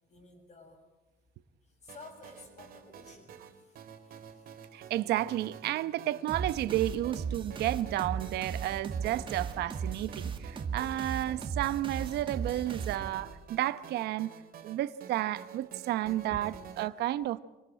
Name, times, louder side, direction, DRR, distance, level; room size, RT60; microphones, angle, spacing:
voice 1, 0.1-0.8 1.8-3.3 4.1-4.4 16.3-16.4, left 3 dB, 45° left, 6.9 m, -51 dB
sound 1, 1.9-16.9, right 8 dB, 60° right, 3.0 m, -50 dB
voice 2, 4.7-14.3 14.6-17.4, right 14 dB, 75° right, 1.0 m, -32 dB
sound 2, 6.3-13.4, right 6 dB, 30° right, 1.9 m, -37 dB
26.5 x 19.0 x 8.9 m
cardioid pair, 110°, 17 cm